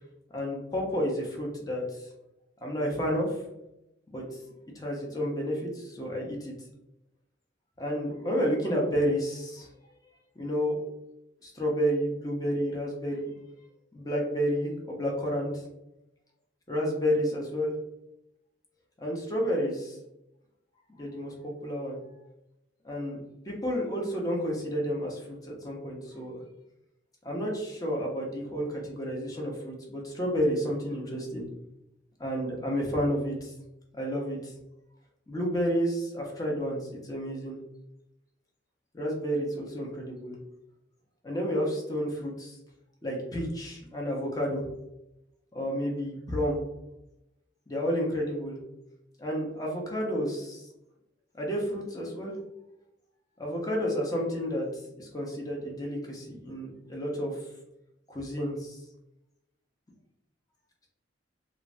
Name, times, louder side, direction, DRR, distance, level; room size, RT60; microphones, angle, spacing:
voice 1, 0.3-2.1 2.6-3.4 4.1-4.4 4.7-6.5 7.8-9.7 10.4-10.8 11.4-13.3 13.9-15.6 16.7-17.7 19.0-20.0 21.0-22.0 22.8-23.2 23.5-26.4 27.2-31.4 32.2-33.5 33.9-34.5 35.3-37.6 38.9-40.3 41.2-42.6 43.0-44.6 45.5-46.6 47.7-48.6 49.2-50.6 51.3-52.3 53.4-54.7 55.0-57.4 58.1-58.8, equal, 20° left, -2 dB, 0.6 m, -30 dB
3.2 x 2.0 x 2.5 m, 0.89 s
head